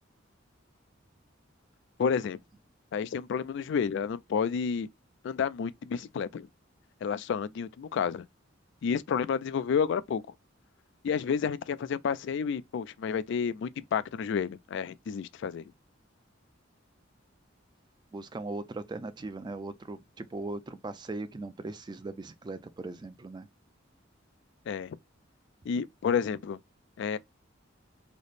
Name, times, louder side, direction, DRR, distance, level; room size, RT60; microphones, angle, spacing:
voice 1, 2.0-2.4 2.9-4.9 5.2-6.5 7.0-8.3 8.8-10.2 11.0-15.6 24.7-25.0 25.7-26.6 27.0-27.2, left 6 dB, 65° left, 0.3 m, -30 dB
voice 2, 18.1-23.5, right 2 dB, 20° right, 0.3 m, -39 dB
4.0 x 2.0 x 3.2 m
head